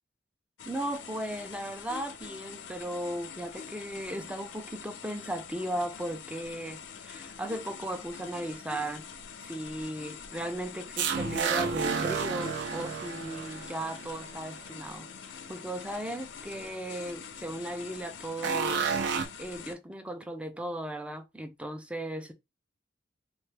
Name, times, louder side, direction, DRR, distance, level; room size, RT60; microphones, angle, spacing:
sound 1, 0.6-19.7, left 6 dB, 70° left, 0.5 m, -45 dB
voice 1, 0.7-9.0 9.4-18.8 19.4-22.3, right 1 dB, 5° right, 0.4 m, -36 dB
sound 2, 11.0-14.3 18.4-19.3, right 6 dB, 65° right, 0.4 m, -31 dB
3.2 x 2.3 x 3.2 m
head